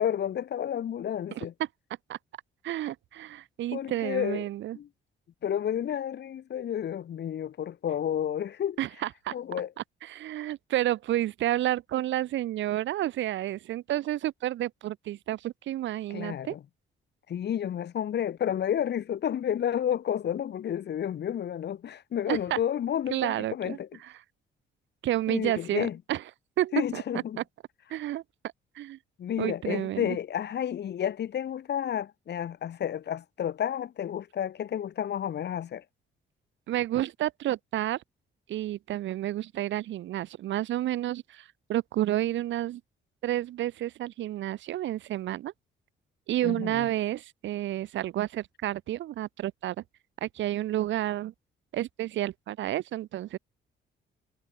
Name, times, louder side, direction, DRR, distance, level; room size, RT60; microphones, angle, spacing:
voice 1, 0.0-1.5 3.7-4.5 4.7-4.9 5.4-8.8 9.3-9.7 16.1-16.6 17.3-23.9 25.3-26.0 26.7-27.4 29.2-35.8 46.4-46.9, left 9 dB, 60° left, 1.6 m, -31 dB
voice 2, 2.6-4.8 8.8-9.3 10.0-16.5 22.3-22.6 23.1-23.8 25.0-26.2 26.6-27.0 27.9-28.2 28.8-29.0 29.4-30.2 36.7-38.0 38.5-42.8 43.2-45.5 46.3-49.8 50.2-51.3 51.7-53.4, right 13 dB, 70° right, 0.7 m, -30 dB
cardioid pair, 90°, 20 cm